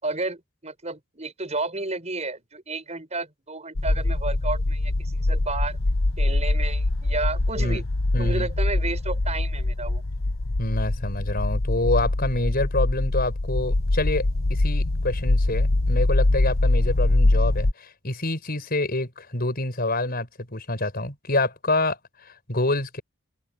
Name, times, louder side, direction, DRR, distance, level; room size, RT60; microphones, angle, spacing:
voice 1, 0.0-5.8 6.2-7.8 8.2-10.0, right 3 dB, 30° right, 8.0 m, -32 dB
sound 1, 3.8-17.7, left 2 dB, 65° left, 1.1 m, -23 dB
voice 2, 8.1-8.5 10.6-22.0 22.5-23.0, left 2 dB, 45° left, 5.9 m, -27 dB
open air
head